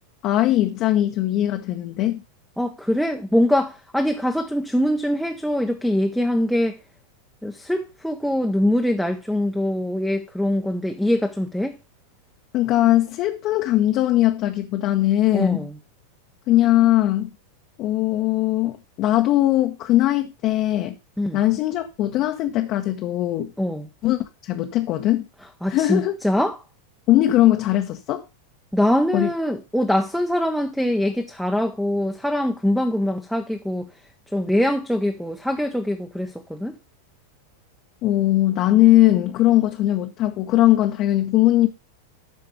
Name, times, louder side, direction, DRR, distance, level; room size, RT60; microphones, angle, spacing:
voice 1, 0.2-2.2 12.5-15.7 16.5-17.3 17.8-20.9 21.3-23.5 24.0-25.3 25.7-26.2 27.1-28.2 29.1-29.3 38.0-41.7, left 14 dB, 40° left, 0.9 m, -20 dB
voice 2, 2.6-6.8 7.4-11.8 15.3-15.7 21.2-21.4 23.6-23.9 25.6-26.6 28.7-33.9 34.3-36.8, left 1 dB, ahead, 0.8 m, -23 dB
12.0 x 4.4 x 5.1 m
figure-of-eight pair, 90°, 0 cm